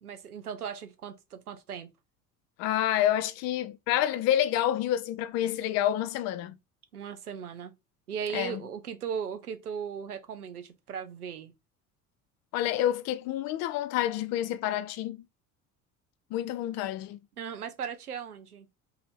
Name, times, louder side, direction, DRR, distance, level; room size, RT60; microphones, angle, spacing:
voice 1, 0.0-1.9 6.9-7.7 8.1-11.5 17.4-18.7, right 7 dB, 90° right, 0.7 m, -37 dB
voice 2, 2.6-6.5 8.3-8.6 12.5-15.2 16.3-17.2, left 12 dB, 40° left, 0.4 m, -28 dB
4.0 x 2.7 x 4.2 m
figure-of-eight pair, 65°, 44 cm